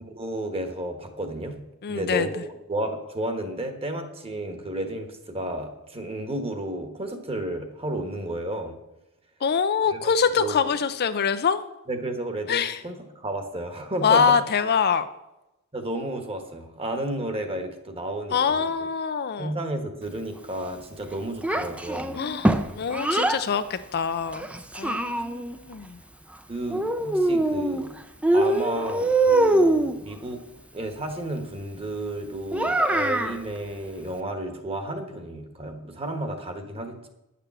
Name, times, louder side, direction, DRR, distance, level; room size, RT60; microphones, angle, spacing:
voice 1, 0.0-1.6 1.9-8.8 9.9-10.0 10.4-10.7 11.9-14.4 15.7-18.7 19.4-22.2 26.5-27.9 28.3-30.4 30.7-37.1, right 1 dB, 25° right, 6 dB, 1.3 m, -32 dB
voice 2, 1.8-2.4 9.4-11.7 12.5-12.8 14.0-15.1 18.3-19.5 22.1-24.4 24.8-26.0, left 6 dB, 45° left, 11 dB, 0.5 m, -24 dB
Child speech kid speaking, 21.4-23.4 24.3-25.6 26.7-27.9 28.2-30.0 32.5-33.4, right 2 dB, 5° right, 0.5 m, -23 dB
9.9 x 6.8 x 7.5 m, 0.95 s
head